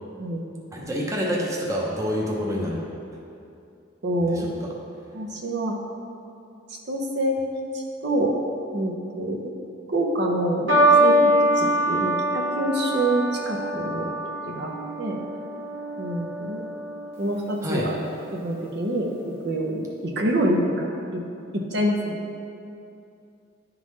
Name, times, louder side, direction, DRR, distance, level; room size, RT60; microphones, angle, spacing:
voice 1, 0.7-2.8 4.2-4.7 17.6-17.9, equal, 15° right, -3 dB, 0.7 m, -27 dB
voice 2, 4.0-4.5 5.1-5.8 6.9-7.4 7.7-8.3 8.7-9.4 9.9-10.7 11.0-14.1 14.5-14.7 15.0-15.2 16.0-16.6 17.2-17.9 18.3-21.2 21.5-22.1, right 1 dB, 60° right, 0 dB, 0.7 m, -26 dB
sound 1, 10.7-17.2 18.0-18.5, right 1 dB, 80° right, 1.2 m, -23 dB
10.5 x 3.8 x 3.1 m, 2.6 s
head